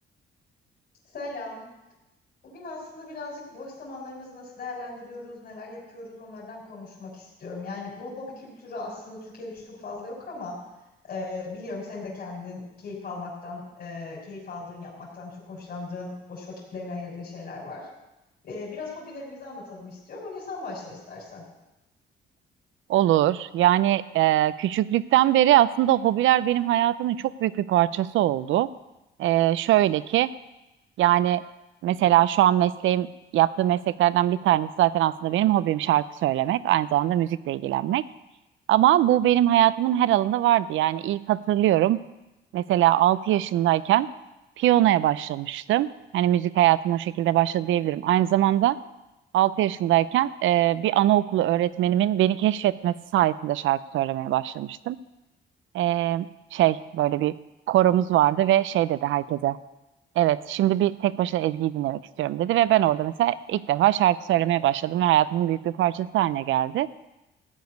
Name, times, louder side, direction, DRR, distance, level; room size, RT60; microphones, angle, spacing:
voice 1, 1.1-1.6 2.4-10.5 11.0-17.9 18.4-21.4, left 3 dB, 50° left, -5 dB, 4.2 m, -38 dB
voice 2, 22.9-28.7 29.2-30.3 31.0-31.4 31.8-33.1 33.3-38.0 38.7-42.0 42.5-44.1 44.6-48.8 49.3-55.0 55.7-56.3 56.5-57.3 57.7-59.6 60.2-66.9, right 13 dB, 75° right, 16 dB, 0.5 m, -22 dB
14.5 x 5.0 x 9.3 m, 0.99 s
cardioid pair, 90°, 20 cm